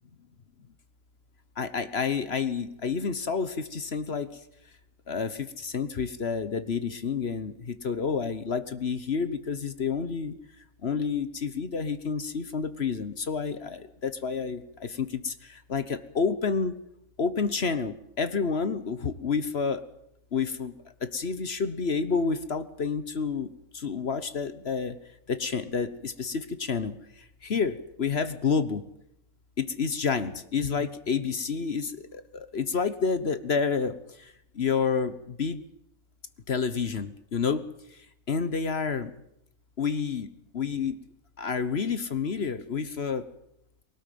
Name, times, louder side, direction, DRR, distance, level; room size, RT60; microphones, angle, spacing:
voice 1, 1.6-4.3 5.1-10.3 10.8-16.8 17.2-19.8 20.3-20.7 21.0-23.5 23.7-25.0 25.3-28.8 29.6-35.6 36.5-37.6 38.3-39.1 39.8-40.3 40.5-41.0 41.4-43.2, left 5 dB, 50° left, 12 dB, 1.3 m, -29 dB
21.0 x 18.5 x 9.3 m, 0.77 s
omnidirectional pair, 1.4 m